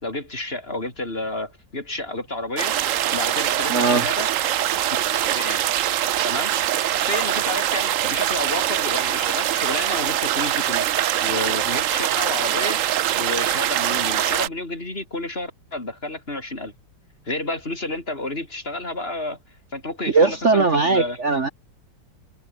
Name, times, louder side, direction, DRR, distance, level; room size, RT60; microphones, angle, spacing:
voice 1, 0.0-2.7 3.1-4.3 4.9-5.6 6.2-6.5 7.0-10.9 11.2-12.8 13.1-16.7 17.3-19.4 19.7-21.2, left 2 dB, 30° left, 4.1 m, -30 dB
sound 1, 2.6-14.5, right 11 dB, 60° right, 0.9 m, -23 dB
voice 2, 3.7-4.0 20.1-21.5, right 4 dB, 40° right, 1.7 m, -19 dB
omnidirectional pair, 1.9 m